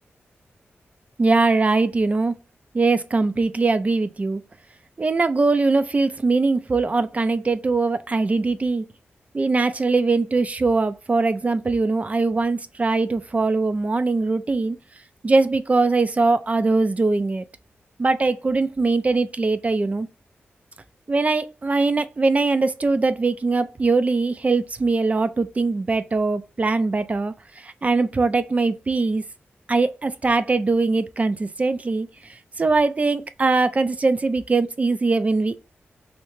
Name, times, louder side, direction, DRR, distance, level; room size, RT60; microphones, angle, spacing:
voice 1, 1.2-2.4 2.7-4.4 5.0-8.8 9.3-14.8 15.2-17.4 18.0-20.1 21.1-29.2 29.7-35.6, right 3 dB, 35° right, 0.3 m, -21 dB
3.2 x 2.8 x 3.1 m
cardioid pair, 75°, 4 cm